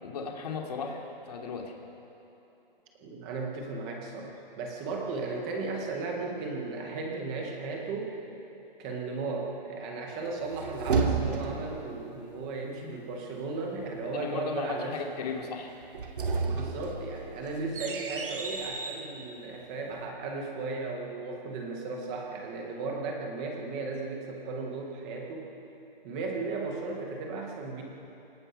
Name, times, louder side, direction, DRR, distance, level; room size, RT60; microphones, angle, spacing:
voice 1, 0.0-1.7 12.8-12.9 14.0-15.8, left 5 dB, 45° left, 0 dB, 2.5 m, -36 dB
voice 2, 3.0-8.2 8.8-15.0 16.3-25.5 26.0-27.8, right 3 dB, 5° right, 1 dB, 0.6 m, -35 dB
sound 1, 10.3-11.8 15.8-19.1, right 4 dB, 65° right, 2.9 m, -31 dB
28.5 x 18.5 x 5.5 m, 2.9 s
hypercardioid pair, 180°, 29 cm